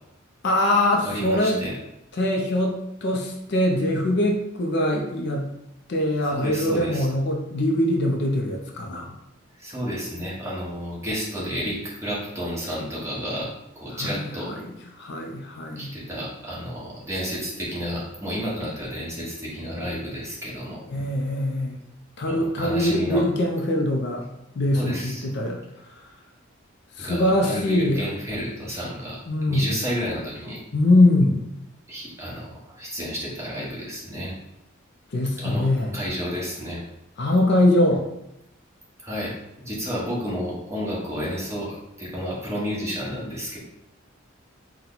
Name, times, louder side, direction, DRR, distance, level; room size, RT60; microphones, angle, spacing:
voice 1, 0.4-1.6 2.2-5.5 5.9-9.2 13.9-15.9 20.9-21.8 22.2-24.2 24.5-26.1 26.9-28.1 29.3-29.7 30.7-31.5 35.1-36.0 37.2-38.1, left 1 dB, 55° left, 1 dB, 0.5 m, -23 dB
voice 2, 1.0-1.8 6.3-7.1 9.6-14.5 15.7-20.8 22.3-23.2 24.7-25.2 27.0-29.2 29.5-30.6 31.9-34.3 35.4-35.7 35.9-36.8 39.0-43.6, equal, 15° right, -7 dB, 1.2 m, -31 dB
4.3 x 2.2 x 3.9 m, 0.85 s
head